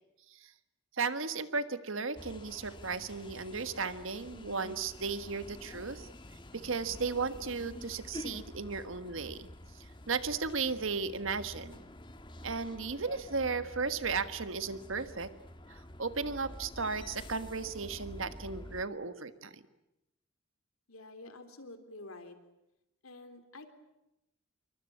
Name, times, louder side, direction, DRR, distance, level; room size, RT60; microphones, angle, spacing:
voice 1, 1.0-6.1 6.5-9.5 10.1-11.8 12.4-15.3 16.0-19.6, right 4 dB, 70° right, 11 dB, 1.5 m, -35 dB
sound 1, 2.2-18.8, left 1 dB, 25° left, 1.6 m, -48 dB
voice 2, 20.9-22.4 23.0-23.7, left 2 dB, 85° left, 9 dB, 3.6 m, -49 dB
27.5 x 24.0 x 8.7 m, 0.90 s
head